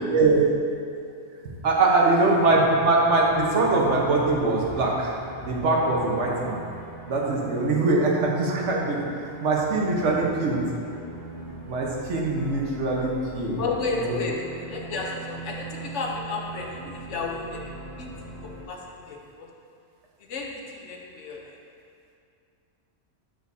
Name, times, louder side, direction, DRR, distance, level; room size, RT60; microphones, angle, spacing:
voice 1, 0.1-0.4 1.6-5.1 5.4-6.6 7.1-9.0 9.4-10.6 11.7-13.6 14.0-14.2, right 3 dB, 75° right, -2 dB, 1.3 m, -22 dB
sound 1, 2.2-18.6, right 1 dB, 35° left, 1.4 m, -40 dB
voice 2, 13.6-18.1 18.4-19.5 20.2-21.6, left 3 dB, 80° left, -1 dB, 1.2 m, -33 dB
8.2 x 6.3 x 2.7 m, 2.4 s
omnidirectional pair, 1.2 m